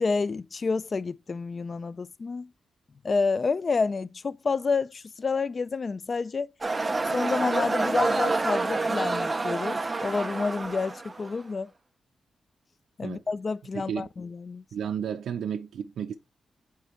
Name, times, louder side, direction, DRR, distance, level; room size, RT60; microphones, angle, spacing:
voice 1, 0.0-2.5 3.0-6.5 7.1-11.7 13.0-14.6, left 4 dB, 30° left, 0.3 m, -29 dB
sound 1, 6.6-11.4, right 3 dB, 20° right, 0.6 m, -28 dB
voice 2, 13.7-14.1 14.7-16.2, right 8 dB, 85° right, 0.5 m, -32 dB
9.1 x 3.7 x 3.1 m
wide cardioid pair, 160°, 0 cm